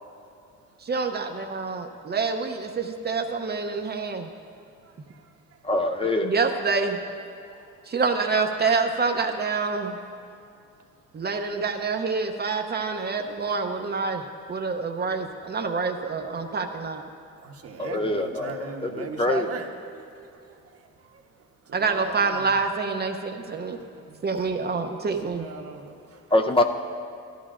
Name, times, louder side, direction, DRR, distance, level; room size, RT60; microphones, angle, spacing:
voice 1, 0.8-4.3 5.0-5.1 6.2-7.0 7.9-10.0 11.1-14.2 14.5-17.1 21.7-23.8 24.2-25.4, right 4 dB, 35° right, 5 dB, 0.7 m, -27 dB
voice 2, 4.4-5.7 7.3-8.0 9.6-10.0 10.3-12.1 13.0-13.5 14.6-14.7 16.4-16.6 17.3-22.7 23.7-24.8 25.2-26.3, right 5 dB, 50° right, 3 dB, 1.1 m, -42 dB
voice 3, 5.6-6.3 17.8-19.5 26.3-26.6, left 1 dB, 20° left, 4 dB, 0.5 m, -24 dB
14.5 x 13.0 x 2.5 m, 2.5 s
cardioid pair, 90°, 30 cm